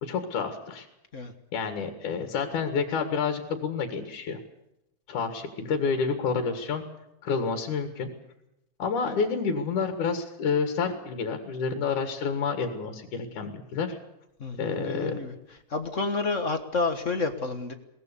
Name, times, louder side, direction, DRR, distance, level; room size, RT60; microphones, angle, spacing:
voice 1, 0.0-0.9 1.5-4.4 5.1-6.8 7.2-8.1 8.8-14.0 14.6-15.1, left 5 dB, 80° left, 6 dB, 3.2 m, -29 dB
voice 2, 14.4-17.7, left 3 dB, 40° left, 7 dB, 1.1 m, -30 dB
22.0 x 19.0 x 6.9 m, 0.89 s
omnidirectional pair, 3.5 m